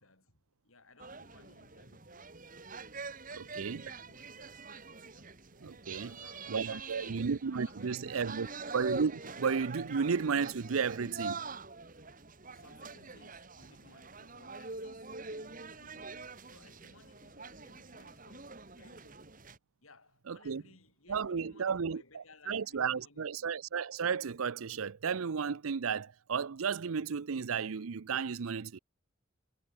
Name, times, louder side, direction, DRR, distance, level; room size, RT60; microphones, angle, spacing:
voice 1, 0.0-2.3 3.3-3.5 3.8-4.8 5.1-5.3 5.9-7.2 7.7-8.7 12.5-19.3 19.8-23.6, left 3 dB, 80° left, 7.4 m, -61 dB
sound 1, 1.0-19.6, right 4 dB, 40° right, 2.5 m, -45 dB
voice 2, 3.3-3.9 5.6-6.2 6.5-8.5 8.7-11.4 20.3-20.6 21.1-28.8, right 6 dB, 85° right, 0.6 m, -33 dB
head